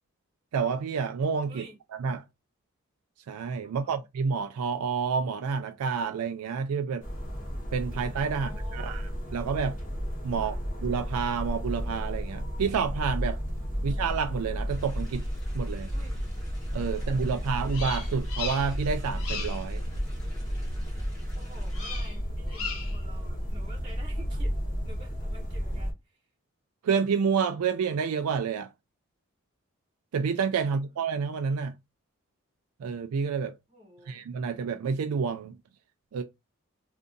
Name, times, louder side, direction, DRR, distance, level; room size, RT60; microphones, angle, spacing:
voice 1, 0.5-1.6 2.0-2.2 3.3-7.0 7.7-9.0 9.3-9.8 10.2-10.5 10.8-13.4 13.8-15.2 15.5-15.9 16.7-19.8 26.8-28.7 30.1-31.7 32.8-33.5 34.1-35.6 36.1-36.2, right 6 dB, 85° right, 0.3 m, -29 dB
voice 2, 3.6-4.1 8.3-9.1 10.3-10.6 13.7-14.0 15.9-16.2 16.9-17.7 21.3-24.5 24.8-26.2 30.6-31.1 33.7-34.2, right 1 dB, 20° right, 0.9 m, -51 dB
sound 1, 7.0-25.9, equal, 35° left, 1.0 m, -33 dB
sound 2, 14.7-22.0, equal, 5° left, 1.5 m, -51 dB
Bird vocalization bird call bird song, 17.7-18.9 19.1-19.7 21.7-22.2 22.5-23.0, left 6 dB, 85° left, 0.9 m, -37 dB
2.6 x 2.5 x 3.7 m
head